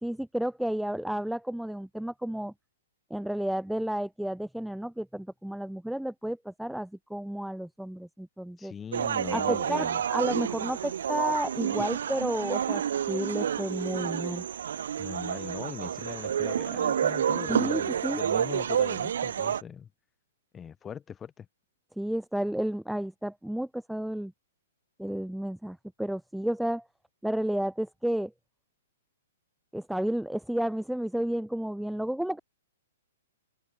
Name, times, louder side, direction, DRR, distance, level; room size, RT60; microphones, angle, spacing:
voice 1, 0.0-2.5 3.1-8.7 9.3-12.8 13.1-14.4 17.5-18.2 22.0-24.3 25.0-26.8 27.2-28.3 29.7-32.4, right 1 dB, ahead, 3.6 m, -31 dB
voice 2, 8.6-10.0 15.0-19.9 20.5-21.5, left 7 dB, 15° left, 6.3 m, -41 dB
sound 1, 8.9-19.6, right 8 dB, 70° right, 6.1 m, -29 dB
open air
hypercardioid pair, 150°, 0 cm